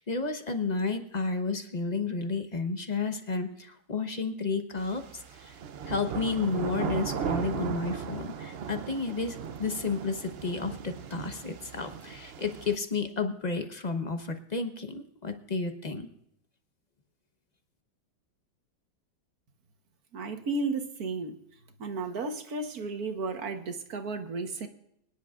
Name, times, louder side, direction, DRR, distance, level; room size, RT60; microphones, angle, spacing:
voice 1, 0.0-5.5 5.9-16.1, left 4 dB, 30° left, 6 dB, 0.9 m, -32 dB
sound 1, 4.8-12.8, right 7 dB, 90° right, 0.5 m, -37 dB
voice 2, 20.1-21.4 21.8-24.7, right 3 dB, 60° right, 6 dB, 1.6 m, -33 dB
25.0 x 10.5 x 2.5 m, 0.75 s
omnidirectional pair, 1.9 m